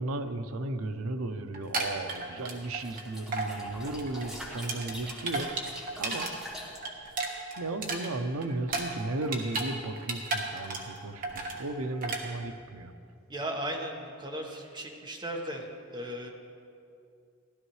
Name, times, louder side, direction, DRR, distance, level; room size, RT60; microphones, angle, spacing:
voice 1, 0.0-5.5 6.0-6.3 7.6-12.9, right 2 dB, 85° right, 8 dB, 0.6 m, -35 dB
sound 1, 1.5-3.0 3.3-3.5 3.9-6.3 6.6-9.7 10.0-11.0 11.2-11.6 12.0-12.2, right 3 dB, 40° right, 1.3 m, -34 dB
sound 2, 2.4-6.8, equal, ahead, 1.5 m, -45 dB
voice 2, 13.3-15.7 15.9-16.3, right 1 dB, 20° right, 0 dB, 1.2 m, -36 dB
15.5 x 11.5 x 3.2 m, 2.4 s
head